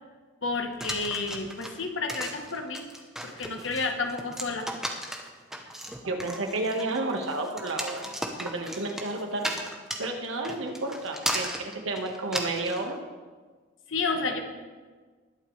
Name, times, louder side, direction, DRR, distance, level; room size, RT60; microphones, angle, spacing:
voice 1, 0.4-2.9 3.2-4.7 13.9-14.4, left 3 dB, 75° left, 4 dB, 1.3 m, -31 dB
sound 1, 0.8-12.8, right 1 dB, ahead, 0.9 m, -35 dB
voice 2, 6.0-8.1 8.4-9.6 10.0-13.0, right 2 dB, 85° right, 3 dB, 1.6 m, -31 dB
20.5 x 8.1 x 3.3 m, 1.4 s
head